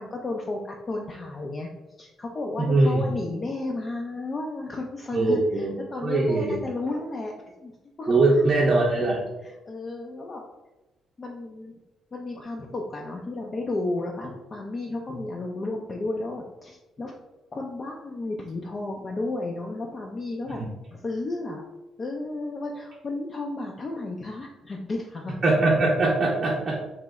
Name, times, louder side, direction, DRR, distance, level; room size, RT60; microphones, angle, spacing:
voice 1, 0.0-1.7 2.0-7.3 7.6-8.5 9.4-10.4 11.2-11.7 12.1-17.1 17.5-20.6 20.9-21.6 22.0-25.3, left 2 dB, 35° left, 0 dB, 0.4 m, -33 dB
voice 2, 2.6-3.0 5.1-5.7 6.0-6.6 8.1-9.2 20.6-20.7 25.4-26.8, right 2 dB, 40° right, -4 dB, 0.5 m, -21 dB
3.0 x 2.0 x 3.5 m, 1.0 s
cardioid pair, 90°, 0 cm